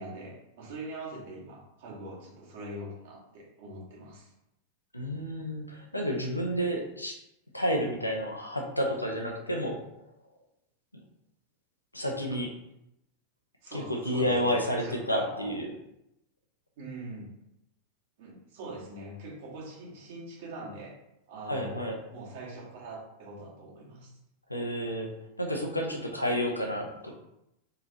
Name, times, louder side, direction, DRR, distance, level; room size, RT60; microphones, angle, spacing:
voice 1, 0.0-4.3 13.6-15.5 16.8-17.3 18.2-21.0 21.3-21.8 22.1-24.1, right 2 dB, 50° right, -3 dB, 1.6 m, -42 dB
voice 2, 4.9-7.2 7.5-9.8 10.9-11.0 11.9-12.5 13.7-15.7 21.4-22.0 24.5-25.1 25.4-27.1, equal, 85° left, 1 dB, 0.7 m, -30 dB
4.4 x 4.0 x 2.7 m, 0.85 s
figure-of-eight pair, 90°, 0 cm